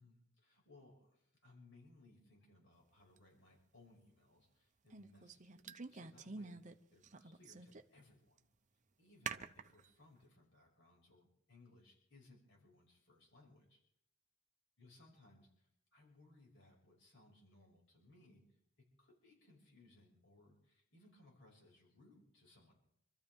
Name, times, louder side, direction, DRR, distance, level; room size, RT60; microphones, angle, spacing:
voice 1, 0.0-8.5 9.0-13.8 14.8-22.7, left 2 dB, 55° left, -1 dB, 5.8 m, -65 dB
sound 1, 3.2-3.3 4.9-6.7 7.0-8.0 8.4-8.5 9.3-9.9, right 5 dB, 35° right, 0.7 m, -47 dB
27.0 x 14.0 x 3.6 m, 0.74 s
head